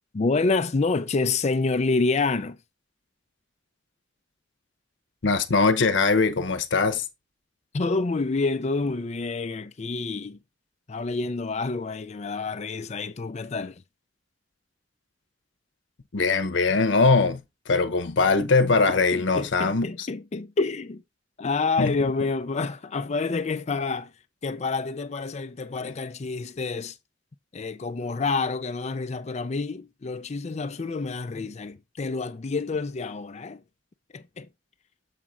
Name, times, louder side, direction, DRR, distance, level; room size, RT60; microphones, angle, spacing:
voice 1, 0.1-2.6 7.7-10.4 10.9-13.8 18.4-21.0 21.4-24.1 24.4-27.0 27.5-33.6 34.1-34.5, left 3 dB, 40° left, 0.5 m, -28 dB
voice 2, 5.2-7.0 16.1-17.4 17.7-20.1 21.8-22.0, left 4 dB, 85° left, 0.8 m, -21 dB
7.3 x 4.3 x 3.6 m
head